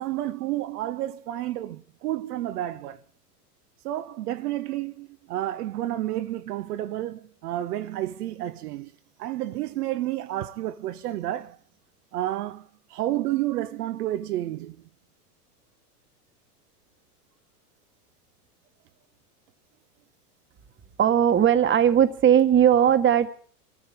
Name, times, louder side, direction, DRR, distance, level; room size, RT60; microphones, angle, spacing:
voice 1, 0.0-3.0 3.8-8.9 9.2-11.6 12.1-14.9, right 14 dB, 75° right, 1.0 m, -30 dB
voice 2, 21.0-23.3, right 9 dB, 25° right, 1.3 m, -18 dB
24.0 x 14.5 x 3.6 m
hypercardioid pair, 105°, 46 cm